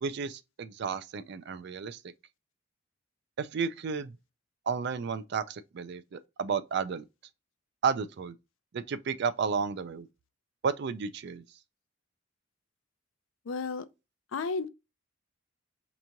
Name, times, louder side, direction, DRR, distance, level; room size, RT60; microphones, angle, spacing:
voice 1, 0.0-2.0 3.4-4.1 4.7-7.0 7.8-8.3 8.7-10.1 10.6-11.4, right 5 dB, 55° right, 0.4 m, -32 dB
voice 2, 13.5-13.9 14.3-14.7, left 4 dB, 80° left, 0.4 m, -32 dB
4.5 x 3.0 x 2.5 m
head